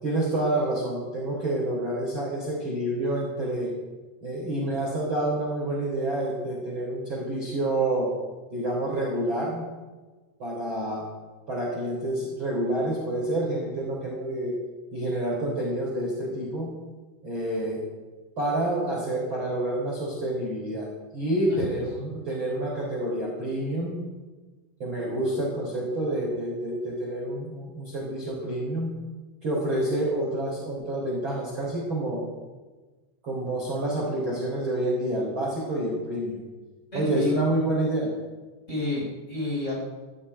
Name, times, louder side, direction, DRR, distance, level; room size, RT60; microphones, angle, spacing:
voice 1, 0.0-3.7 4.2-8.1 8.5-9.6 10.4-11.1 11.5-14.5 14.9-16.7 17.2-17.9 18.4-20.9 21.1-24.0 24.8-28.9 29.4-32.2 33.2-36.4 36.9-38.1, right 1 dB, 25° right, -4 dB, 4.2 m, -28 dB
voice 2, 36.9-37.3 38.7-39.8, left 2 dB, 15° left, -4 dB, 6.2 m, -30 dB
16.0 x 8.3 x 9.8 m, 1.3 s
omnidirectional pair, 5.4 m